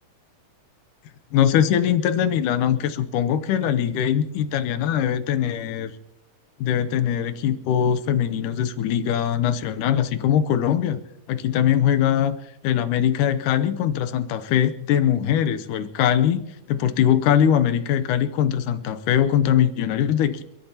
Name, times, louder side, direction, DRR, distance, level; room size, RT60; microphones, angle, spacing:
voice 1, 1.3-5.9 6.6-11.0 11.3-12.4 12.6-16.4 16.7-20.4, left 9 dB, 90° left, 9 dB, 2.3 m, -21 dB
30.0 x 13.5 x 2.9 m, 0.83 s
omnidirectional pair, 3.5 m